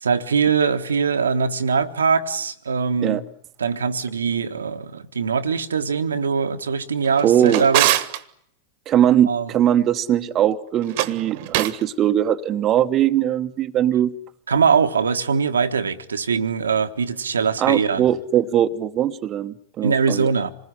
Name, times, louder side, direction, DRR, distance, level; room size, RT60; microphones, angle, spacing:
voice 1, 0.0-3.2 3.6-7.9 9.3-9.5 14.5-18.1 19.8-20.5, right 6 dB, 70° right, 1.3 m, -22 dB
Drawer open or close, 7.0-8.2 10.8-11.8, right 15 dB, 50° right, 1.4 m, -23 dB
voice 2, 7.2-7.6 8.9-14.1 17.6-20.3, right 10 dB, 30° right, 1.1 m, -20 dB
27.0 x 20.0 x 9.9 m
figure-of-eight pair, 90°, 0 cm